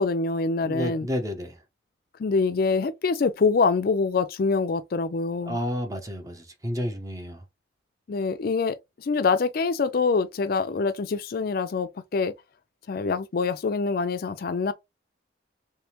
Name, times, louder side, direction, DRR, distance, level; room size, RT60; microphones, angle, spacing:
voice 1, 0.0-1.1 2.2-5.6 8.1-12.3 12.9-14.7, left 4 dB, 50° left, 0.4 m, -25 dB
voice 2, 0.6-1.6 5.4-7.4, equal, 20° right, 0.7 m, -31 dB
3.4 x 3.2 x 2.9 m
head